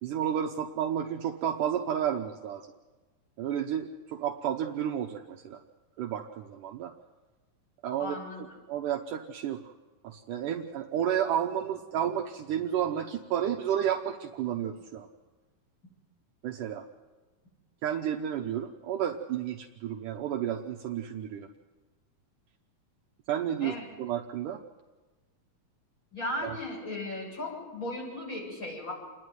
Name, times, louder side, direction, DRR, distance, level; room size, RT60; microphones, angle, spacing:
voice 1, 0.0-2.6 3.4-5.6 6.0-6.9 7.8-9.7 10.0-15.1 16.4-16.9 17.8-21.5 23.3-24.6 26.4-26.6, right 9 dB, 70° right, 2 dB, 2.3 m, -31 dB
voice 2, 8.0-8.6 23.6-23.9 26.1-28.9, left 1 dB, 20° left, -3 dB, 7.8 m, -36 dB
28.5 x 10.5 x 9.4 m, 1.2 s
omnidirectional pair, 4.1 m